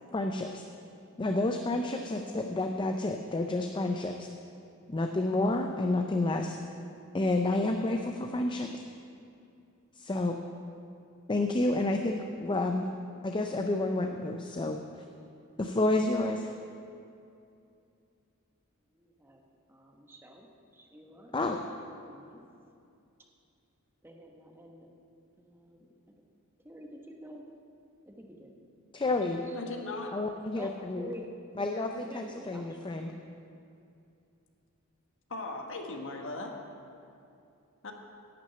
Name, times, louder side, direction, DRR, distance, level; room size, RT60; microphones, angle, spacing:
voice 1, 0.1-0.6 1.2-4.3 4.9-6.6 7.1-8.7 10.0-10.4 11.3-12.9 13.2-14.8 15.6-16.5 21.3-21.6 28.9-29.4 30.1-31.1 31.6-33.1, left 2 dB, 20° left, 4 dB, 0.4 m, -30 dB
voice 2, 18.9-21.3 22.1-22.4 24.0-24.9 25.4-25.9 26.6-27.4 28.1-28.5 29.5-29.6 30.6-33.1, right 1 dB, 10° right, 2 dB, 1.0 m, -48 dB
voice 3, 29.5-30.2 35.3-36.5 37.8-37.9, left 2 dB, 60° left, 3 dB, 1.2 m, -38 dB
11.0 x 6.1 x 8.6 m, 2.5 s
head